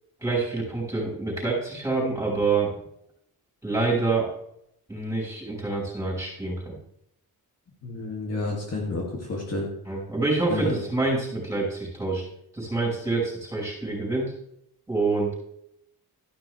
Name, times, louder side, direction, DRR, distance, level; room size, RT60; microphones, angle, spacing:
voice 1, 0.2-2.7 3.6-4.3 4.9-6.8 9.9-12.2 12.5-14.3 14.9-15.3, right 3 dB, 10° right, -4 dB, 5.6 m, -26 dB
voice 2, 7.8-9.7 10.5-10.7, left 2 dB, 40° left, -2 dB, 2.4 m, -30 dB
13.0 x 11.5 x 3.3 m, 0.74 s
wide cardioid pair, 160°, 37 cm